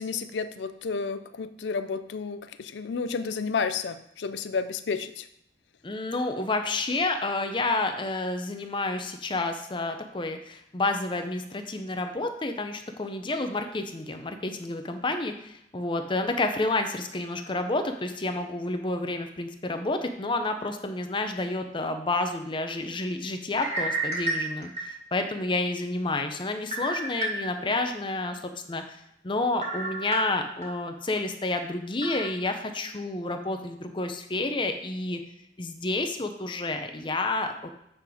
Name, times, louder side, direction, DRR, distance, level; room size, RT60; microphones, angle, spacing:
voice 1, 0.0-5.3, left 5 dB, 85° left, 12 dB, 0.5 m, -31 dB
voice 2, 5.8-35.2 35.6-37.7, left 2 dB, 30° left, 6 dB, 0.7 m, -30 dB
sound 1, 23.5-25.3 25.8-25.9 26.7-27.8 28.2-28.3 29.6-30.7 31.1-31.2 32.0-32.3, right 2 dB, 35° right, 2.1 m, -31 dB
8.6 x 3.9 x 4.9 m, 0.75 s
head